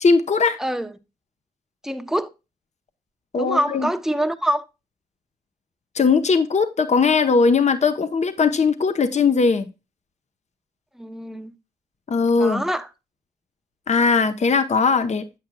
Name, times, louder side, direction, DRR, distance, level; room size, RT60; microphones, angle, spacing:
voice 1, 0.0-0.6 3.3-3.9 5.9-9.7 12.1-12.6 13.9-15.2, left 4 dB, 45° left, 0.8 m, -19 dB
voice 2, 0.6-0.9 1.8-2.3 3.4-4.6 11.0-11.5 12.4-12.9, equal, ahead, 0.8 m, -25 dB
8.6 x 7.7 x 2.2 m
supercardioid pair, 40°, 17 cm